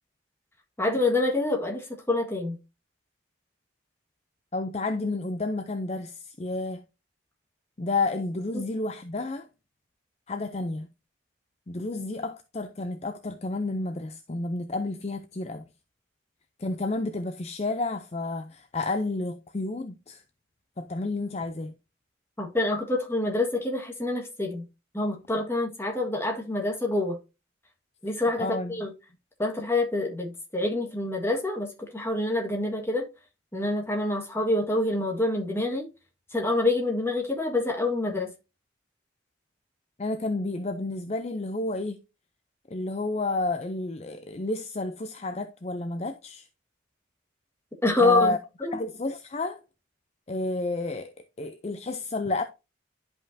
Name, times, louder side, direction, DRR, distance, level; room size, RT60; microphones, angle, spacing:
voice 1, 0.8-2.6 8.5-8.6 22.4-24.6 24.9-27.2 28.0-28.9 29.4-33.1 33.5-35.8 36.3-38.3 47.8-48.3 48.6-48.7, left 2 dB, 10° left, 1.5 m, -26 dB
voice 2, 4.5-6.8 7.8-9.5 10.3-10.9 11.7-15.6 16.6-20.2 20.8-21.7 28.4-28.9 40.0-42.0 42.7-46.5 48.0-48.4 48.7-49.6 50.3-52.4, left 2 dB, 35° left, 0.5 m, -30 dB
11.0 x 5.3 x 2.6 m
head